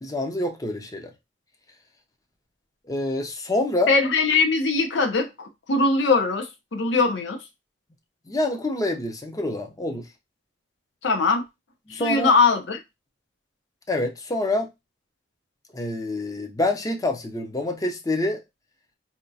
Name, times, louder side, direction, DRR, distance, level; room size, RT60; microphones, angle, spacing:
voice 1, 0.0-1.1 2.9-3.9 8.3-10.1 11.9-12.3 13.9-14.7 15.7-18.4, left 2 dB, 20° left, 0.5 m, -26 dB
voice 2, 3.9-7.4 11.0-11.4 11.9-12.8, left 4 dB, 65° left, 0.6 m, -21 dB
4.2 x 2.3 x 2.6 m
head